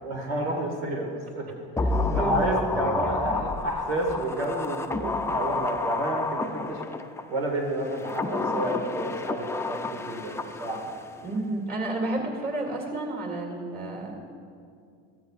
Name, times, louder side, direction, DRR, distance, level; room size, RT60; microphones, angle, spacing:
voice 1, 0.0-6.8 7.3-10.8, right 1 dB, 90° right, 1 dB, 2.0 m, -30 dB
sound 1, 1.8-7.2 7.9-11.1 11.4-11.5, left 3 dB, 10° left, 0.5 m, -30 dB
voice 2, 2.1-3.4 11.2-14.3, right 2 dB, 30° right, 0 dB, 2.5 m, -31 dB
15.0 x 13.0 x 2.5 m, 2.3 s
supercardioid pair, 100°, 31 cm